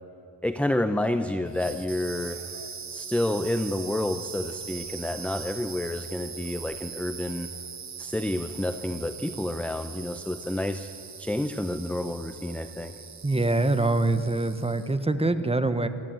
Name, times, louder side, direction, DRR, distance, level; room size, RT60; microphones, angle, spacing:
voice 1, 0.4-2.4 2.9-7.5 8.0-10.9 11.2-12.9, left 1 dB, 5° left, 9 dB, 0.7 m, -29 dB
sound 1, 1.5-15.0, right 6 dB, 35° right, 1.0 m, -41 dB
voice 2, 13.2-15.9, right 2 dB, 15° right, 10 dB, 1.1 m, -24 dB
27.0 x 14.0 x 9.0 m, 2.9 s
wide cardioid pair, 110°, 46 cm